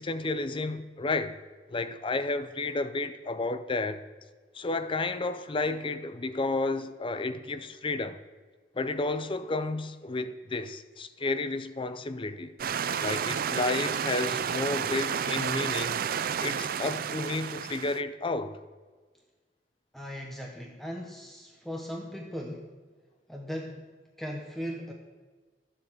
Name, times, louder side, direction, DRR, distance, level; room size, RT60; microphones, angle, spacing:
voice 1, 0.0-1.4 1.7-4.0 4.5-8.2 8.8-12.6 13.0-16.0 16.4-18.6, left 3 dB, 30° left, 0.6 m, -31 dB
sound 1, 12.6-18.0, right 7 dB, 55° right, 0.4 m, -31 dB
voice 2, 19.9-22.7 23.3-23.8 24.2-24.9, equal, ahead, 1.1 m, -38 dB
13.5 x 7.7 x 6.3 m
head